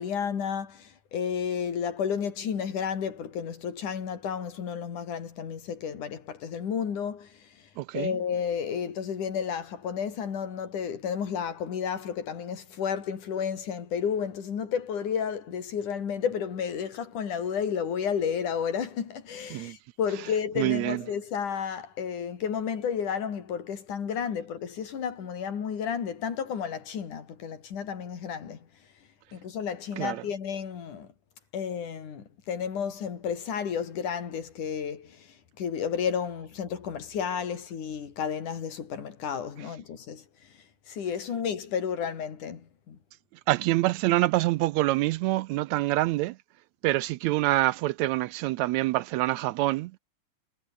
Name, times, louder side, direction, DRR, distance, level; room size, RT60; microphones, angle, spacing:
voice 1, 0.0-7.5 7.9-28.6 29.3-31.1 31.5-40.2 40.9-43.0, left 7 dB, 85° left, 4.4 m, -32 dB
voice 2, 7.8-8.1 19.5-19.8 20.6-21.0 30.0-30.2 43.5-46.4 46.8-50.0, right 17 dB, 80° right, 1.7 m, -26 dB
omnidirectional pair, 3.5 m